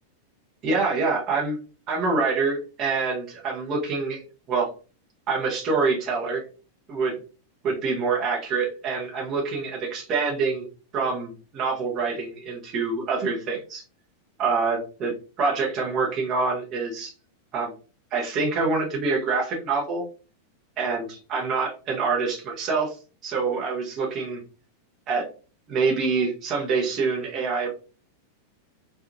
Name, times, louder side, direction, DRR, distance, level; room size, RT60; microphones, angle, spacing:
voice 1, 0.6-1.6 1.9-4.2 4.5-4.7 5.3-6.4 6.9-7.2 7.6-10.7 10.9-13.8 14.4-17.1 17.5-17.7 18.1-20.0 20.8-23.0 23.2-24.4 25.1-25.3 25.7-27.7, right 4 dB, 35° right, -2 dB, 0.8 m, -26 dB
2.8 x 2.3 x 2.5 m, 0.35 s
figure-of-eight pair, 90°, 0 cm